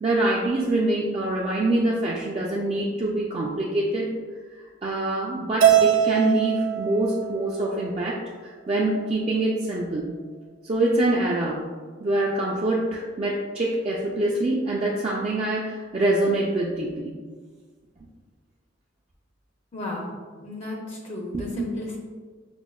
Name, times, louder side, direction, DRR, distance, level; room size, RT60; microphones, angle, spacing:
voice 1, 0.0-4.1 4.8-10.1 10.6-11.7 12.0-17.1 21.3-21.7, right 2 dB, 30° right, -5 dB, 0.3 m, -25 dB
Keyboard (musical), 5.6-8.0, right 9 dB, 85° right, 0.5 m, -22 dB
voice 2, 19.7-22.0, left 2 dB, 35° left, -1 dB, 0.4 m, -34 dB
5.9 x 2.0 x 2.2 m, 1.5 s
head